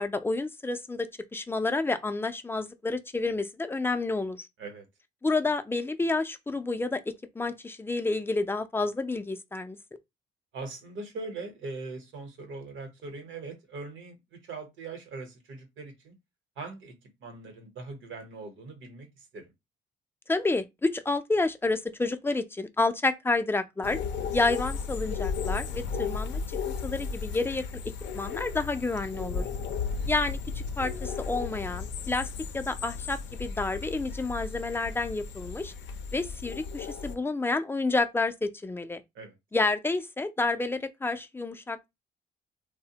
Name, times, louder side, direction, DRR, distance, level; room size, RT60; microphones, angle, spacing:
voice 1, 0.0-4.5 5.2-9.8 20.3-24.0 24.3-27.7 28.1-29.4 30.1-30.4 30.8-32.3 32.5-35.7 36.1-39.0 39.5-41.9, left 3 dB, 10° left, 0.4 m, -29 dB
voice 2, 10.5-16.1 16.6-16.9 17.2-19.4 29.3-29.9 39.1-39.4, right 3 dB, 75° right, 0.9 m, -41 dB
sound 1, 23.8-37.2, left 5 dB, 65° left, 0.5 m, -35 dB
3.2 x 2.1 x 2.8 m
cardioid pair, 90°, 20 cm